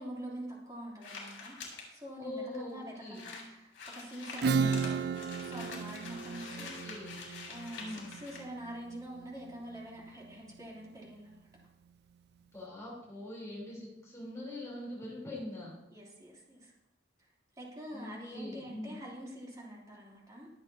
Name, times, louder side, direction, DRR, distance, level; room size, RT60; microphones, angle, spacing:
voice 1, 0.0-1.6 1.9-5.0 5.4-6.9 7.5-11.5 15.9-16.7 17.6-20.5, right 1 dB, 20° right, -4 dB, 3.1 m, -45 dB
sound 1, 1.0-1.9 2.5-2.6 2.8-2.9 3.1-8.4, left 4 dB, 75° left, 4.5 m, -46 dB
voice 2, 2.2-3.2 4.5-4.8 6.5-7.2 7.8-8.1 12.5-15.8 17.9-19.0, left 1 dB, 15° left, -5 dB, 3.7 m, -43 dB
Acoustic guitar / Strum, 4.4-9.8, right 5 dB, 55° right, 0.3 m, -34 dB
23.5 x 7.9 x 2.8 m, 0.89 s
head